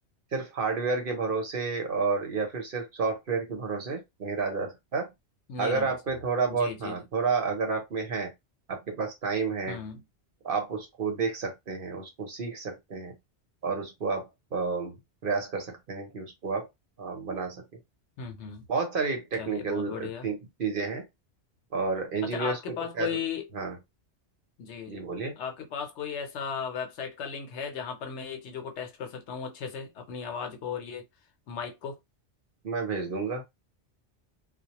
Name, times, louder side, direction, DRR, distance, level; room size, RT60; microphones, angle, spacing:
voice 1, 0.3-5.1 5.6-8.3 8.7-9.8 10.4-13.1 13.6-14.9 15.2-16.7 17.0-17.6 18.7-21.0 21.7-23.2 23.5-23.8 24.9-25.4 32.6-33.4, right 4 dB, 55° right, 0.9 m, -30 dB
voice 2, 5.5-5.9 6.5-7.0 9.7-10.0 18.2-18.6 19.4-20.3 22.2-23.5 24.6-25.0 25.4-31.0 31.5-32.0, left 7 dB, 75° left, 0.9 m, -36 dB
2.2 x 2.1 x 2.8 m
omnidirectional pair, 1.2 m